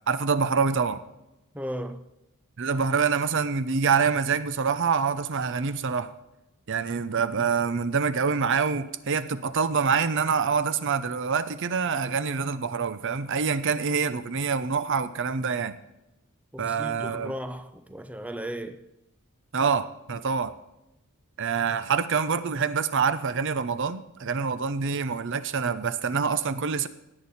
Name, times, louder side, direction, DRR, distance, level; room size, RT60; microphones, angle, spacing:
voice 1, 0.1-1.0 2.6-6.1 6.7-15.8 16.6-17.3 19.5-20.6 21.4-26.9, right 5 dB, 60° right, 0.7 m, -26 dB
voice 2, 1.5-2.0 16.5-18.9, equal, 5° right, 0.6 m, -36 dB
17.0 x 8.9 x 4.2 m
head